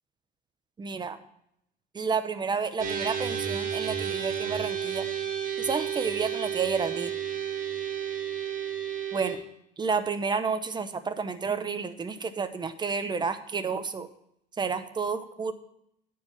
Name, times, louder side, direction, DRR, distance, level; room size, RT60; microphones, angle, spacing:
voice 1, 0.8-1.2 1.9-5.1 5.6-7.1 9.1-9.4 9.8-14.1 14.6-15.5, right 5 dB, 25° right, 10 dB, 0.8 m, -30 dB
sound 1, 2.8-9.4, right 8 dB, 50° right, 2.1 m, -32 dB
9.5 x 4.7 x 7.0 m, 0.76 s
cardioid pair, 110°, 17 cm